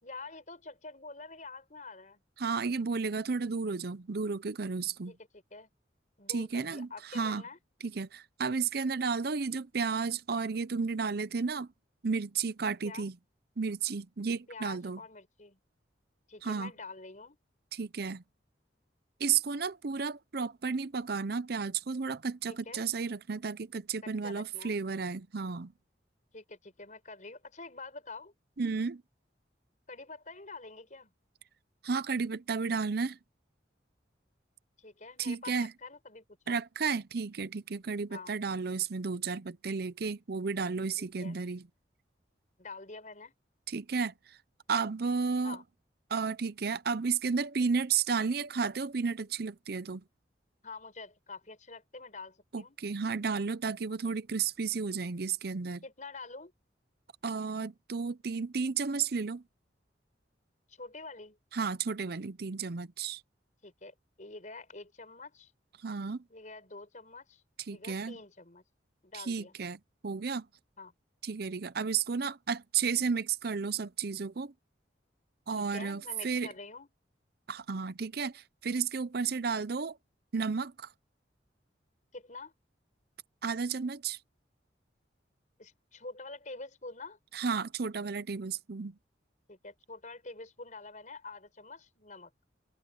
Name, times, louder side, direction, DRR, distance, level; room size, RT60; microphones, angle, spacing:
voice 1, 0.0-2.2 5.1-5.7 6.2-7.6 12.8-13.1 14.5-15.6 16.3-17.4 22.5-22.9 24.0-24.8 26.3-28.3 29.9-31.1 34.8-36.6 38.1-38.4 41.0-41.4 42.6-43.3 45.4-45.6 50.6-52.8 55.8-56.5 60.7-61.4 63.6-65.5 66.3-67.4 67.7-68.6 69.0-69.6 70.8-70.9 75.5-76.9 82.1-82.5 85.6-87.2 89.5-92.3, left 3 dB, 45° left, 5.3 m, -47 dB
voice 2, 2.4-5.1 6.3-6.9 7.1-7.4 7.8-11.7 12.0-13.2 13.6-15.0 16.4-16.7 17.7-18.2 19.2-25.7 28.6-29.0 31.8-33.2 35.2-35.7 36.5-41.6 43.7-44.1 44.7-45.6 46.1-50.0 52.5-55.8 57.2-59.4 61.5-63.2 65.8-66.2 67.7-68.2 69.1-70.5 71.2-74.5 75.5-76.5 77.5-80.0 80.3-80.9 83.4-84.2 87.3-88.9, right 5 dB, 60° right, 0.7 m, -32 dB
head